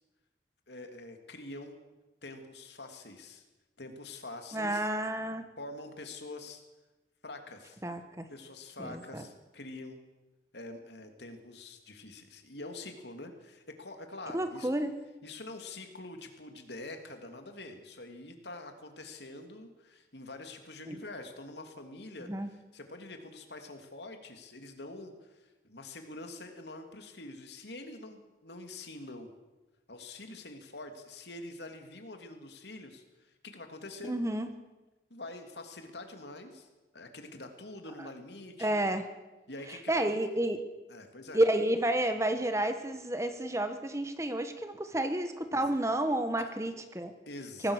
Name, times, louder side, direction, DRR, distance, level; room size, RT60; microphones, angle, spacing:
voice 1, 0.7-1.8 2.2-3.4 3.8-4.9 5.6-6.6 7.2-7.8 8.3-10.0 10.5-14.7 15.2-29.3 29.9-34.1 35.1-36.7 36.9-38.8 39.5-40.1 40.9-41.4 45.5-45.8 46.4-46.5 47.3-47.7, left 2 dB, 70° left, 5 dB, 2.9 m, -45 dB
voice 2, 4.5-5.5 7.8-8.3 8.8-9.2 14.3-14.9 20.9-21.0 22.3-22.5 34.0-34.5 38.0-38.1 38.6-39.0 39.7-40.6 41.3-47.1 47.6-47.7, right 1 dB, 15° right, 8 dB, 1.2 m, -30 dB
24.0 x 18.0 x 6.6 m, 1.1 s
head